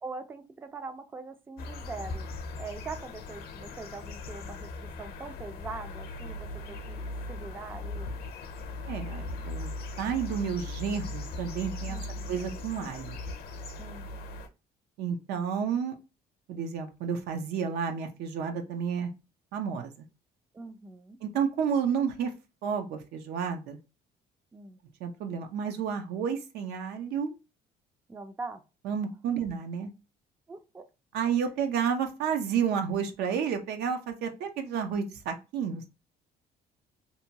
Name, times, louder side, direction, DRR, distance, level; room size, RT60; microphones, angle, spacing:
voice 1, 0.0-2.2 2.6-8.1 11.8-12.4 13.8-14.1 20.5-21.2 24.5-24.8 28.1-28.6 30.5-30.8, right 4 dB, 10° right, 8 dB, 0.3 m, -42 dB
sound 1, 1.6-14.5, left 2 dB, 65° left, 0.6 m, -39 dB
voice 2, 8.9-9.7 10.0-12.0 12.3-13.2 15.0-15.9 16.5-19.1 19.5-20.1 21.2-22.3 22.6-23.8 25.0-27.4 28.8-29.9 31.1-35.9, right 7 dB, 75° right, 6 dB, 0.6 m, -31 dB
2.7 x 2.2 x 2.7 m, 0.29 s
cardioid pair, 110°, 17 cm